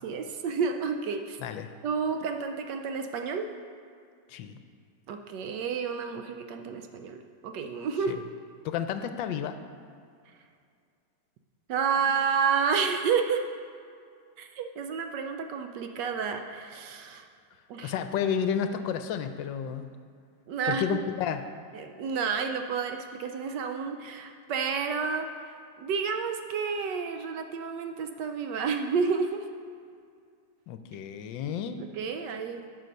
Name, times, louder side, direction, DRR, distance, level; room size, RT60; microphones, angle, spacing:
voice 1, 0.0-1.4 1.8-3.5 5.1-8.1 11.7-13.4 14.4-17.3 17.7-17.9 20.5-21.0 21.7-29.5 31.8-32.6, right 6 dB, 70° right, 6 dB, 1.1 m, -30 dB
voice 2, 4.3-4.6 8.1-8.2 8.6-9.6 17.8-19.9 20.7-21.4 30.7-31.8, left 8 dB, 80° left, 9 dB, 1.2 m, -31 dB
11.0 x 6.3 x 5.3 m, 2.3 s
omnidirectional pair, 2.1 m